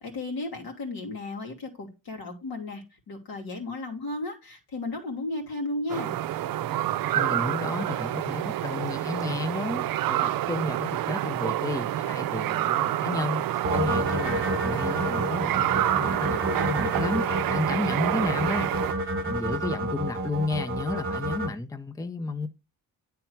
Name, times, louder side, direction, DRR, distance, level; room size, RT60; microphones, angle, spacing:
voice 1, 0.0-6.2 15.8-16.8, left 2 dB, 75° left, 2.1 m, -35 dB
sound 1, 5.9-18.9, right 13 dB, 65° right, 0.5 m, -28 dB
voice 2, 7.1-18.7 19.2-22.5, left 3 dB, 10° left, 0.6 m, -32 dB
sound 2, 13.6-21.5, right 1 dB, 35° right, 1.2 m, -30 dB
9.1 x 3.5 x 4.5 m
cardioid pair, 75°, 37 cm